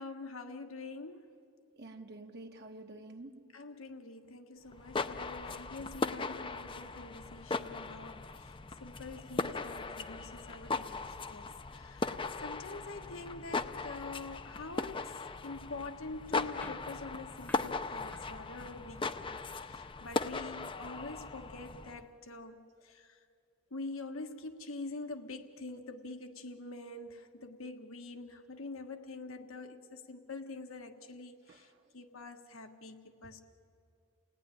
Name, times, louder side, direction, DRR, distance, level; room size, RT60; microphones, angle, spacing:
voice 1, 0.0-1.3 3.5-8.5 8.8-11.4 11.7-19.4 19.6-23.2 23.7-31.7 31.9-33.4, left 3 dB, 80° left, 1.5 m, -45 dB
voice 2, 1.8-3.5 31.5-31.7, right 2 dB, 50° right, 1.1 m, -49 dB
sound 1, 4.7-22.0, left 3 dB, 25° left, 0.5 m, -38 dB
sound 2, 16.6-19.5, left 1 dB, 10° left, 1.0 m, -55 dB
29.5 x 17.5 x 10.0 m
head